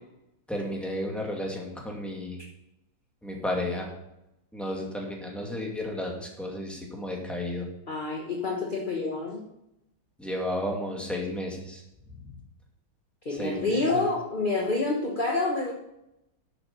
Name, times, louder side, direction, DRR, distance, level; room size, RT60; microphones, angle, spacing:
voice 1, 0.5-2.4 3.2-3.9 4.5-7.7 10.2-11.8 12.2-12.3 13.3-14.0, left 1 dB, ahead, 0 dB, 2.4 m, -33 dB
voice 2, 7.9-9.4 13.2-15.7, left 3 dB, 30° left, 0 dB, 1.2 m, -28 dB
11.0 x 8.2 x 5.5 m, 0.87 s
omnidirectional pair, 2.2 m